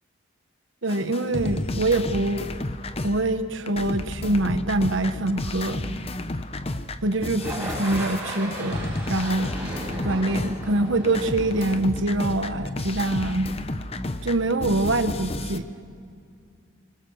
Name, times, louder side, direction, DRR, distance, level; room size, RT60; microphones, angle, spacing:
voice 1, 0.8-2.5 3.0-5.8 7.0-9.5 10.0-13.5 14.2-15.7, right 2 dB, 65° right, 9 dB, 1.2 m, -24 dB
sound 1, 0.9-3.4 3.7-10.8 11.0-15.6, left 2 dB, 30° left, 0.7 m, -32 dB
sound 2, 7.4-12.7, right 1 dB, 5° right, 5.3 m, -36 dB
25.0 x 20.5 x 6.5 m, 2.3 s
head